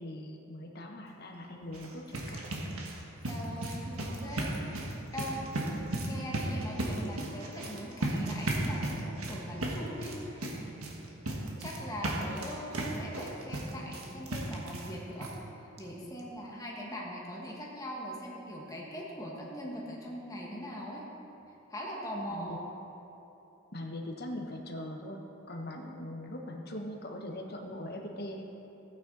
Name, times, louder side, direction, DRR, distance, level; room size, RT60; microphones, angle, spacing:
voice 1, 0.0-2.5 22.3-22.6 23.7-25.2 25.5-28.4, left 1 dB, 45° left, 1 dB, 1.2 m, -41 dB
sound 1, 1.6-15.0 15.2-15.3 15.8-15.9 16.2-16.3, right 1 dB, 80° right, 1.5 m, -35 dB
voice 2, 3.3-10.8 11.6-21.0 21.7-22.7, equal, 15° left, -3 dB, 1.6 m, -41 dB
15.0 x 9.3 x 4.1 m, 3.0 s
head